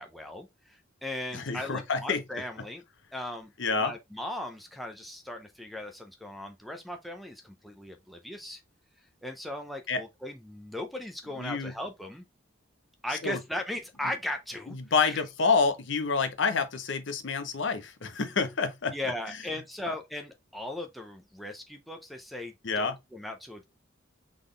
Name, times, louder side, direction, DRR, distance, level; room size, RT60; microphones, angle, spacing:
voice 1, 0.0-2.8 3.1-3.5 3.8-8.6 9.2-12.2 13.0-14.8 15.1-15.2 18.9-23.6, left 1 dB, ahead, 0.6 m, -38 dB
voice 2, 1.3-2.2 3.6-3.9 9.9-10.0 11.4-11.7 13.1-13.4 14.7-18.9 19.3-19.4 19.9-20.0 22.6-23.0, left 4 dB, 60° left, 0.7 m, -28 dB
4.1 x 3.6 x 3.2 m
head